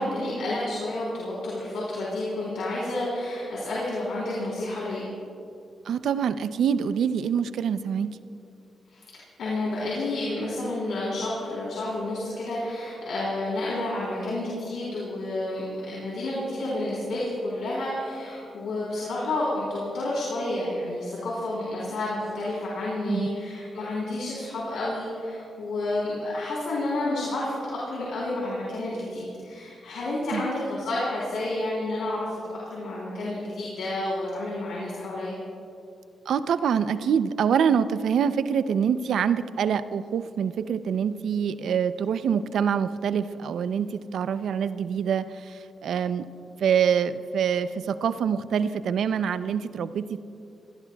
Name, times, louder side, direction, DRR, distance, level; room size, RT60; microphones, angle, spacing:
voice 1, 0.0-5.1 8.9-9.0 9.4-32.4 32.7-35.4, left 1 dB, 85° left, -7 dB, 3.6 m, -30 dB
voice 2, 5.9-8.1 23.1-23.3 30.3-30.4 36.3-46.3 46.6-50.2, right 7 dB, 80° right, 12 dB, 0.5 m, -25 dB
25.0 x 18.0 x 2.3 m, 2.6 s
cardioid pair, 75°, 0 cm